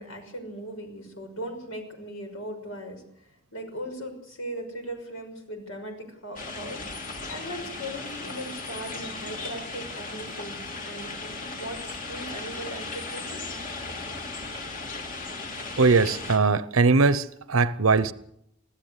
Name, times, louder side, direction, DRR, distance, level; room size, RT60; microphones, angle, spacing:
voice 1, 0.0-3.0 3.5-13.4, equal, 75° left, 6.0 m, -38 dB
sound 1, 6.4-16.4, left 3 dB, 40° left, 3.0 m, -36 dB
voice 2, 15.8-18.1, right 4 dB, 85° right, 0.9 m, -20 dB
25.5 x 15.5 x 8.2 m
head